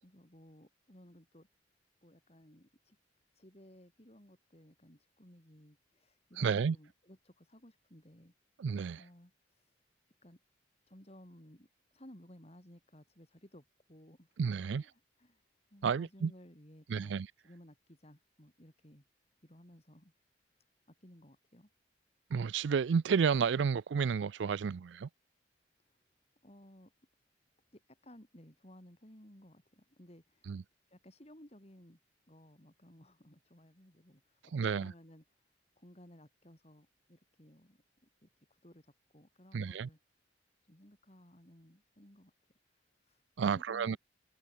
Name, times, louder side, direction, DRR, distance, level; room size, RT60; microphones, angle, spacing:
voice 1, 0.0-1.5 2.0-3.0 3.3-8.3 9.0-9.8 10.2-10.4 10.9-14.4 14.7-15.4 15.7-19.0 19.4-20.1 20.9-21.7 25.9-26.0 26.4-26.9 27.7-30.6 30.9-32.0 32.3-35.4 35.8-40.0 40.7-42.3 42.7-44.0, equal, 35° left, 4.5 m, -58 dB
voice 2, 6.4-6.8 8.6-9.0 14.4-14.8 15.8-16.3 16.9-17.3 22.3-25.1 30.5-30.6 34.5-34.9 39.5-39.9 43.4-44.0, right 6 dB, 75° right, 0.4 m, -31 dB
head